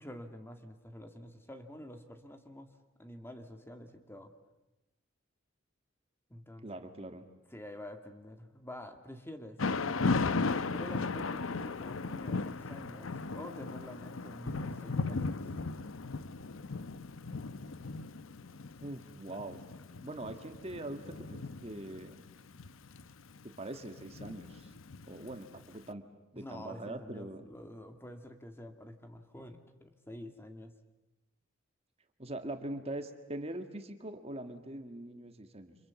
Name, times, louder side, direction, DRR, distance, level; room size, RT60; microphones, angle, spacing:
voice 1, 0.0-2.7 3.0-4.3 6.3-6.7 7.5-9.6 10.6-15.5 26.4-30.7, left 1 dB, 10° left, 6 dB, 2.0 m, -48 dB
voice 2, 6.6-7.3 18.8-19.6 20.0-22.2 23.4-24.7 25.1-26.0 26.3-27.5 32.2-35.8, right 1 dB, 30° right, 7 dB, 1.7 m, -42 dB
Thunder / Rain, 9.6-25.6, left 3 dB, 85° left, 0.9 m, -36 dB
30.0 x 26.5 x 7.1 m, 0.97 s
head